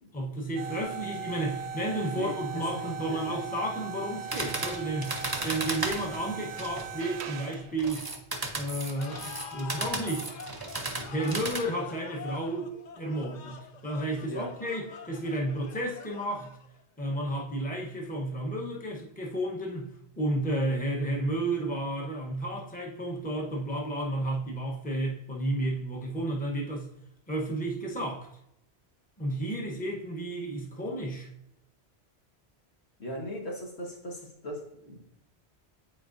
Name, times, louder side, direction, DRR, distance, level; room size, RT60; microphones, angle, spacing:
voice 1, 0.1-8.1 8.5-10.3 11.0-16.5 17.0-26.9 27.3-28.3 29.2-31.3, right 1 dB, 10° left, 0.9 m, -32 dB
sound 1, 0.6-7.8, right 5 dB, 85° right, 0.9 m, -39 dB
voice 2, 2.1-3.4 14.3-14.5 33.0-35.0, equal, 80° left, 1.7 m, -39 dB
sound 2, 4.3-6.9 7.8-11.6, right 2 dB, 25° right, 0.7 m, -35 dB
sound 3, 9.0-16.8, left 6 dB, 55° left, 0.6 m, -46 dB
8.6 x 4.5 x 2.5 m
omnidirectional pair, 1.1 m